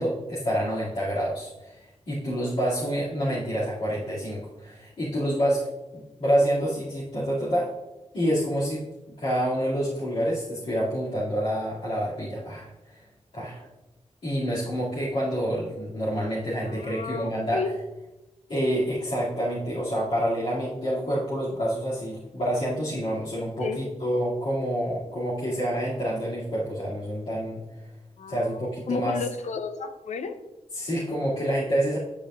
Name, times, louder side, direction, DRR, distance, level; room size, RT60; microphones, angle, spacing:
voice 1, 0.0-5.7 5.9-7.7 8.1-8.8 9.2-13.0 13.3-13.7 14.2-17.7 18.5-27.6 28.3-29.3 30.7-32.0, equal, 65° left, -10 dB, 2.6 m, -27 dB
voice 2, 16.7-17.7 23.6-23.8 28.2-28.5 28.9-30.4, left 5 dB, 90° left, 9 dB, 0.7 m, -32 dB
10.0 x 8.6 x 2.5 m, 1.0 s
wide cardioid pair, 115°, 12 cm